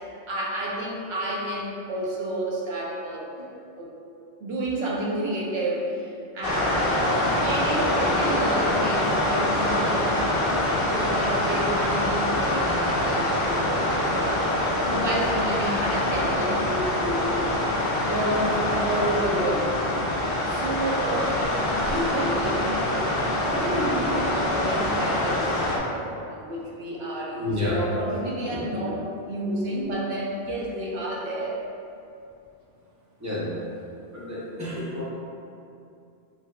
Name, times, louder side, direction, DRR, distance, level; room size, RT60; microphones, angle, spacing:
voice 1, 0.3-3.9 4.4-10.2 10.8-13.7 14.1-14.4 14.7-19.7 20.4-31.6, right 1 dB, 70° right, -4 dB, 0.9 m, -30 dB
sound 1, 6.4-25.8, left 1 dB, 65° left, 0.7 m, -25 dB
voice 2, 27.4-27.8 28.5-28.7 33.2-33.6 34.1-35.0, left 1 dB, 20° right, -8 dB, 0.6 m, -30 dB
3.4 x 3.3 x 2.2 m, 2.6 s
omnidirectional pair, 1.1 m